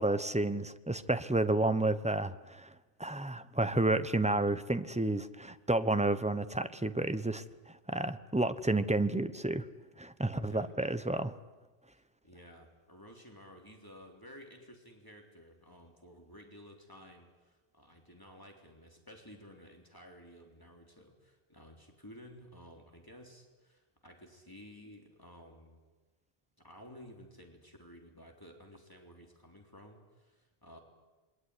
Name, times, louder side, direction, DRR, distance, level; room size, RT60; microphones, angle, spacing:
voice 1, 0.0-2.7 3.0-9.7 10.0-11.3, right 2 dB, 5° right, 12 dB, 0.9 m, -31 dB
voice 2, 10.3-10.9 11.9-25.8 26.6-30.8, equal, 20° left, 1 dB, 3.6 m, -54 dB
27.5 x 22.0 x 9.8 m, 1.2 s
omnidirectional pair, 1.1 m